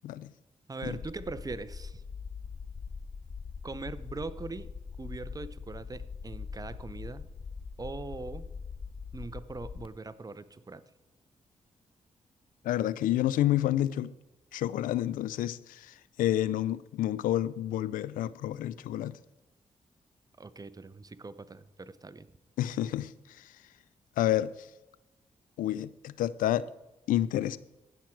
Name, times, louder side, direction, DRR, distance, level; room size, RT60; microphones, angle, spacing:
voice 1, 0.7-2.0 3.6-4.7 5.0-7.3 7.8-8.5 9.1-10.8 20.4-22.3, right 3 dB, 25° right, 0.7 m, -41 dB
sound 1, 0.8-9.9, left 5 dB, 40° left, 0.6 m, -42 dB
voice 2, 12.6-14.1 14.5-19.2 22.6-23.5 24.2-24.7 25.6-26.7 27.1-27.6, left 13 dB, 85° left, 0.4 m, -29 dB
15.5 x 6.1 x 4.5 m
supercardioid pair, 50°, 14 cm